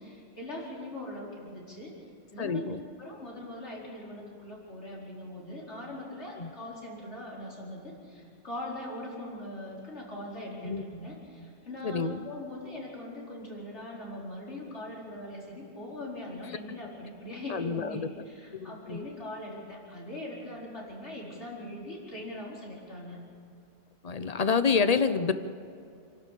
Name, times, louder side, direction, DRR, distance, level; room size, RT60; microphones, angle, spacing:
voice 1, 0.0-1.9 2.3-2.6 3.0-23.2, left 1 dB, 85° left, -4 dB, 5.0 m, -41 dB
voice 2, 2.4-2.8 6.4-6.5 10.6-10.8 11.8-12.2 17.5-18.1 18.5-19.0 24.0-25.3, left 5 dB, 40° left, 12 dB, 0.9 m, -28 dB
28.0 x 12.0 x 8.5 m, 2.6 s
omnidirectional pair, 1.1 m